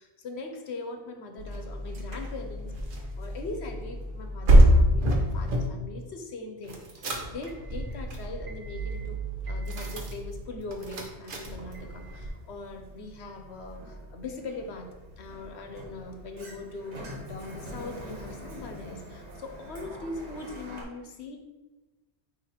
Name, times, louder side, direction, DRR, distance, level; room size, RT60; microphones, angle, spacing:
voice 1, 0.0-9.2 9.5-14.9 15.2-21.4, left 2 dB, 75° left, 4 dB, 1.1 m, -41 dB
sound 1, 1.4-5.7 6.6-12.3, equal, 55° right, 1.1 m, -26 dB
Sliding door, 11.4-20.8, equal, 85° right, 1.5 m, -45 dB
8.9 x 3.0 x 4.3 m, 1.2 s
omnidirectional pair, 1.1 m